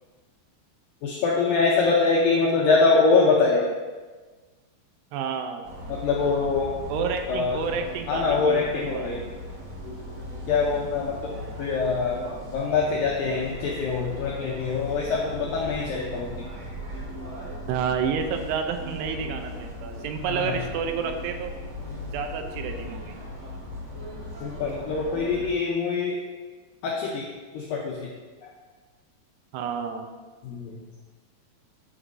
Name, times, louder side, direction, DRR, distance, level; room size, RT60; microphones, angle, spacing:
voice 1, 1.0-3.7 5.9-6.7 7.3-7.6 8.1-9.2 10.5-11.3 11.6-12.2 12.5-16.5 20.3-20.6 24.4-26.2 26.8-28.1 28.4-28.5 30.4-30.8, left 4 dB, 80° left, -3 dB, 2.0 m, -24 dB
voice 2, 5.1-5.7 6.9-9.1 17.7-21.5 22.1-23.2 29.5-30.1, right 6 dB, 85° right, 5 dB, 2.7 m, -30 dB
sound 1, 5.6-25.5, equal, 60° right, 1.0 m, -38 dB
12.5 x 6.1 x 2.7 m, 1.3 s
omnidirectional pair, 5.0 m